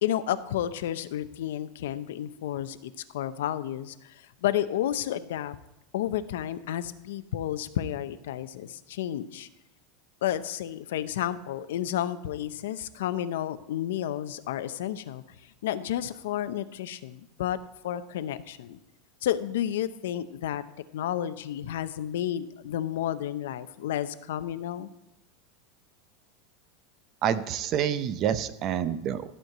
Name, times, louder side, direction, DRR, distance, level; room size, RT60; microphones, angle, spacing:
voice 1, 0.0-4.1 4.4-5.6 5.9-9.5 10.2-15.2 15.6-17.6 17.8-18.8 19.2-20.6 20.9-24.9, left 11 dB, 90° left, 13 dB, 0.6 m, -31 dB
voice 2, 27.2-29.2, right 9 dB, 30° right, 14 dB, 0.6 m, -27 dB
13.5 x 4.5 x 7.8 m, 0.90 s
supercardioid pair, 165°, 0 cm